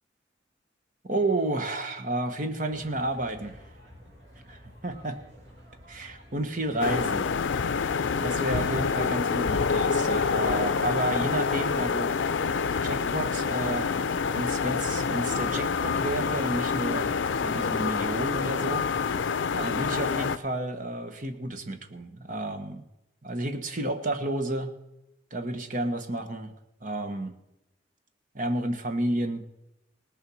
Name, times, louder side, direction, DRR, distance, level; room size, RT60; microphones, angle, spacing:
voice 1, 1.0-3.6 4.5-5.2 5.9-7.3 8.2-12.2 12.8-13.9 14.3-18.8 19.5-22.8 23.2-24.7 25.3-26.5 26.8-27.3 28.3-29.5, right 1 dB, 45° right, 7 dB, 1.3 m, -31 dB
sound 1, 2.7-17.9, equal, 65° right, 2.9 m, -51 dB
sound 2, 6.8-20.4, left 5 dB, 90° left, 0.5 m, -27 dB
18.5 x 7.0 x 6.3 m, 0.89 s
head